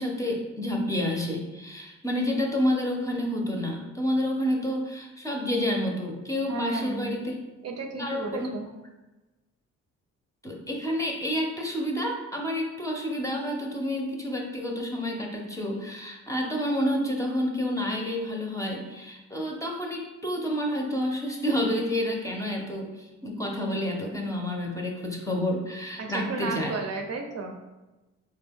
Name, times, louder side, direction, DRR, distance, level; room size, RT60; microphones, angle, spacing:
voice 1, 0.0-7.4 8.0-8.5 10.4-26.8, left 1 dB, 10° left, 0 dB, 0.6 m, -29 dB
voice 2, 6.5-7.2 7.6-8.7 26.0-27.5, right 3 dB, 55° right, 3 dB, 0.6 m, -33 dB
4.3 x 2.3 x 3.5 m, 1.1 s
cardioid pair, 90°, 30 cm